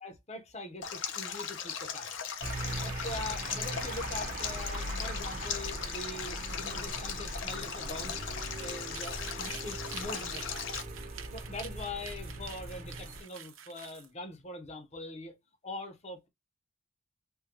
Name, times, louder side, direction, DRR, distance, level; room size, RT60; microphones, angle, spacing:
voice 1, 0.0-2.3 2.8-8.2 8.6-10.6 11.3-15.4 15.6-16.3, left 2 dB, 35° left, 0.7 m, -43 dB
Stream, 0.8-10.8, left 7 dB, 70° left, 0.6 m, -38 dB
sound 1, 2.4-13.2, right 1 dB, 40° right, 0.9 m, -40 dB
sound 2, 8.5-14.1, right 9 dB, 85° right, 0.7 m, -48 dB
3.6 x 2.2 x 2.8 m
head